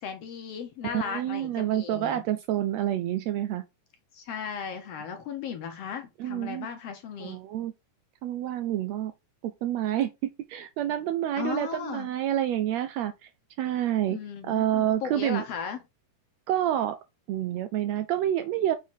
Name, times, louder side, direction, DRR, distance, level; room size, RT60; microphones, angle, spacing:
voice 1, 0.0-2.2 4.1-7.4 11.4-12.1 14.1-15.8, left 7 dB, 65° left, 1.8 m, -36 dB
voice 2, 0.8-3.6 6.2-6.7 7.2-7.7 8.2-9.1 9.4-13.3 13.6-14.2 14.5-15.4 16.5-17.0 17.3-18.8, right 12 dB, 80° right, 1.6 m, -28 dB
7.4 x 3.6 x 4.4 m
omnidirectional pair, 3.5 m